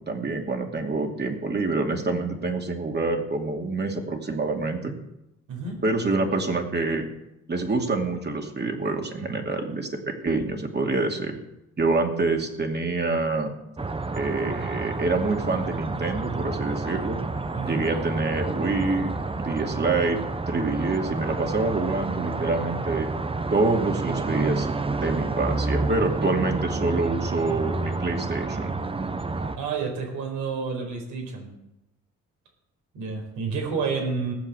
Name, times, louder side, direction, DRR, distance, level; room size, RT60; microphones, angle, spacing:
voice 1, 0.1-4.9 5.8-7.1 7.5-11.4 11.8-13.5 14.1-17.2 17.6-19.1 19.4-20.2 20.5-23.1 23.5-24.7 25.0-28.7, right 3 dB, 35° right, 3 dB, 2.6 m, -26 dB
voice 2, 5.5-5.8 17.5-17.9 29.6-31.5 32.9-34.3, right 5 dB, 80° right, 1 dB, 4.9 m, -30 dB
sound 1, 13.8-29.6, right 3 dB, 20° right, 0.9 m, -29 dB
17.5 x 7.6 x 7.0 m, 0.89 s
cardioid pair, 90°, 30 cm